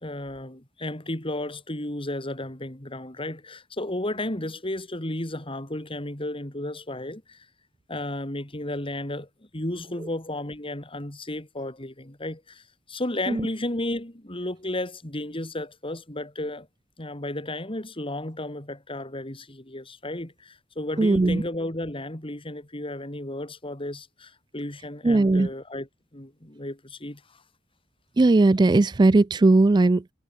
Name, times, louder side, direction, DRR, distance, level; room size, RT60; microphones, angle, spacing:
voice 1, 0.0-7.5 7.9-16.7 17.0-27.4, left 1 dB, 30° left, 3.4 m, -33 dB
voice 2, 21.0-21.4 25.0-25.5 28.2-30.1, right 2 dB, 25° right, 0.4 m, -18 dB
head